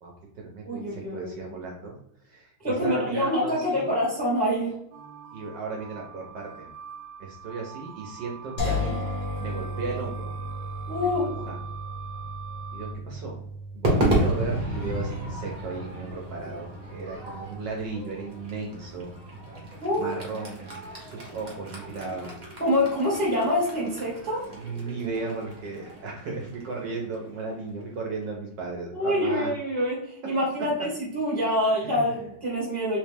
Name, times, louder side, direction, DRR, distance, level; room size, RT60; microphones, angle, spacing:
voice 1, 0.0-2.0 2.2-4.0 5.3-6.7 7.2-9.0 9.4-10.3 11.0-11.6 12.7-13.4 13.7-19.1 20.0-22.4 24.5-29.5 31.8-32.1, right 3 dB, 65° right, -1 dB, 1.2 m, -35 dB
voice 2, 0.7-1.5 2.6-4.8 10.9-11.3 19.8-20.1 22.6-24.5 28.9-33.0, left 1 dB, 5° left, -4 dB, 0.9 m, -26 dB
sound 1, 4.9-12.9, right 7 dB, 85° right, 1.5 m, -43 dB
sound 2, 8.6-21.6, left 1 dB, 45° left, 1.0 m, -37 dB
Crowd / Fireworks, 13.8-28.2, right 1 dB, 35° right, 0.7 m, -33 dB
3.5 x 3.1 x 3.3 m, 0.74 s
omnidirectional pair, 2.4 m